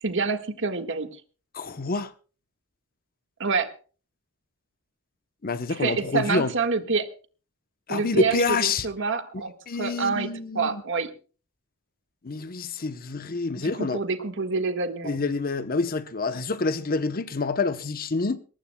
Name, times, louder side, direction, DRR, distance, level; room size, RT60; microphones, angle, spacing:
voice 1, 0.0-1.1 3.4-3.7 5.8-7.1 7.9-9.5 9.8-10.3 10.5-11.1 13.6-15.2, right 4 dB, 60° right, 1.6 m, -27 dB
voice 2, 1.5-2.1 5.4-6.5 7.9-8.9 9.7-10.8 12.2-14.0 15.0-18.4, left 3 dB, 40° left, 0.8 m, -27 dB
22.5 x 19.0 x 2.3 m
head